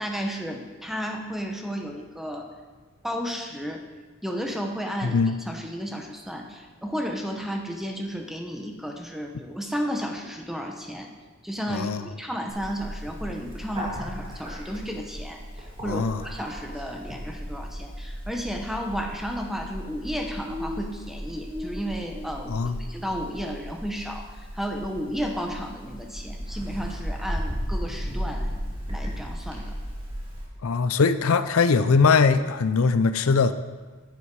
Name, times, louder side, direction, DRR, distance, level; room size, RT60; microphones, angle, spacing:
voice 1, 0.0-2.5 3.0-3.8 4.2-5.2 5.5-11.1 11.4-28.5 28.9-29.7, equal, ahead, 3 dB, 0.8 m, -33 dB
voice 2, 5.0-5.3 11.7-12.0 15.8-16.2 22.5-22.9 30.6-33.5, left 4 dB, 80° left, 12 dB, 0.5 m, -21 dB
Bird, 12.5-30.4, equal, 25° right, 2.2 m, -35 dB
9.8 x 8.4 x 4.8 m, 1.3 s
head